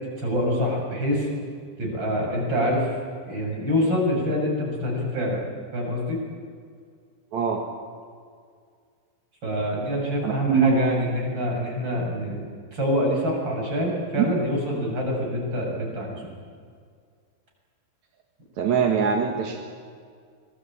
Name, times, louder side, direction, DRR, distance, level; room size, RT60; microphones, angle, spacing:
voice 1, 0.2-1.3 1.8-2.9 3.3-5.4 5.7-6.2 9.4-16.3, equal, 25° right, -1 dB, 7.1 m, -26 dB
voice 2, 7.3-7.6 10.2-10.7 14.2-14.3 18.6-19.5, right 7 dB, 55° right, 2 dB, 2.1 m, -22 dB
25.0 x 21.5 x 8.7 m, 2.1 s
omnidirectional pair, 5.6 m